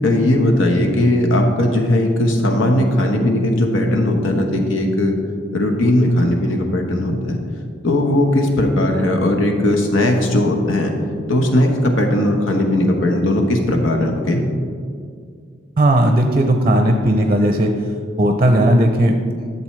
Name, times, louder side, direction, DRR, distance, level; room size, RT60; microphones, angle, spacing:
voice 1, 0.0-5.2 5.5-7.4 7.8-10.9 11.3-14.4, left 1 dB, 85° left, 2 dB, 1.2 m, -17 dB
voice 2, 15.8-17.7 18.2-19.6, right 1 dB, 30° right, 5 dB, 0.5 m, -16 dB
12.0 x 7.0 x 3.2 m, 2.2 s
head